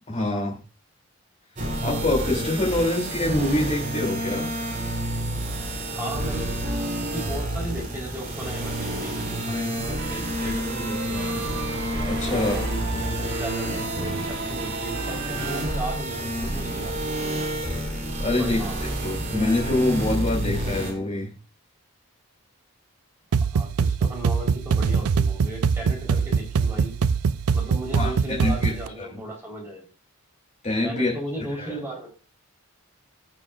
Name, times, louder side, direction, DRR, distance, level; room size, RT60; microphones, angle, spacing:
voice 1, 0.1-0.6 1.8-4.5 12.0-12.5 18.2-18.6 19.0-21.3 27.9-28.1 28.4-28.7 29.0-29.1 30.6-31.1 31.6-31.7, left 2 dB, 30° left, -2 dB, 2.7 m, -25 dB
sound 1, 1.6-20.9, right 1 dB, 35° right, 3.3 m, -29 dB
voice 2, 5.9-6.5 7.1-11.5 12.3-17.4 18.4-18.8 23.4-27.0 27.5-29.8 30.8-32.1, right 1 dB, 10° right, -3 dB, 3.8 m, -36 dB
sound 2, 10.0-15.6, right 3 dB, 55° right, 1.2 m, -36 dB
sound 3, 23.3-28.9, right 5 dB, 85° right, 0.5 m, -23 dB
20.0 x 6.8 x 2.4 m, 0.36 s
head